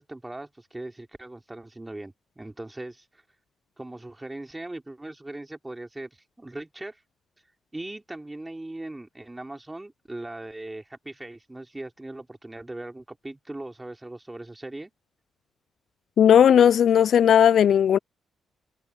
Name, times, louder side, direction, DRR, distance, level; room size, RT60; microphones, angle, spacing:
voice 1, 0.0-3.2 3.8-6.1 6.4-7.0 7.7-14.9, right 2 dB, 15° right, 4.1 m, -39 dB
voice 2, 16.2-18.0, left 9 dB, 60° left, 0.4 m, -16 dB
hypercardioid pair, 40°, 0 cm